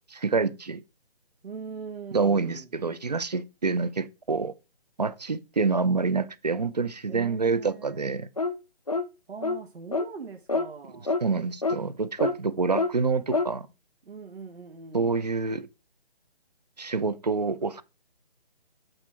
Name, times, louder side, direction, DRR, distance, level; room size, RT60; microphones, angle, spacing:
voice 1, 0.1-0.8 2.1-4.5 5.0-8.3 11.2-13.7 14.9-15.7 16.8-17.8, right 4 dB, 45° right, 0.5 m, -27 dB
voice 2, 1.4-2.7 3.3-3.4 7.1-8.2 9.3-11.2 14.0-15.2, right 5 dB, 85° right, 1.3 m, -41 dB
sound 1, 8.4-8.6 8.9-9.1 9.4-9.6 9.9-10.1 10.5-10.7 11.1-11.2 11.6-11.8 12.2-12.4 12.7-12.9 13.3-13.5, left 3 dB, 40° left, 0.4 m, -26 dB
7.9 x 3.6 x 4.3 m
hypercardioid pair, 175°, 31 cm